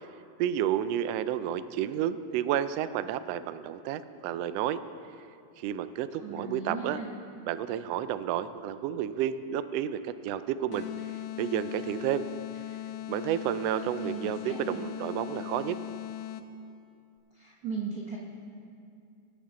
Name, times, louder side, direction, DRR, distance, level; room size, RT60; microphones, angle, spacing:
voice 1, 0.4-4.8 5.6-7.0 7.4-10.9 11.4-12.2 13.1-15.8, right 10 dB, 85° right, 12 dB, 1.4 m, -31 dB
voice 2, 6.2-7.1 14.0-14.9 17.3-18.2, right 4 dB, 65° right, -3 dB, 0.9 m, -37 dB
sound 1, 10.7-16.7, left 12 dB, 85° left, 1.3 m, -39 dB
21.0 x 9.4 x 3.7 m, 2.4 s
omnidirectional pair, 3.3 m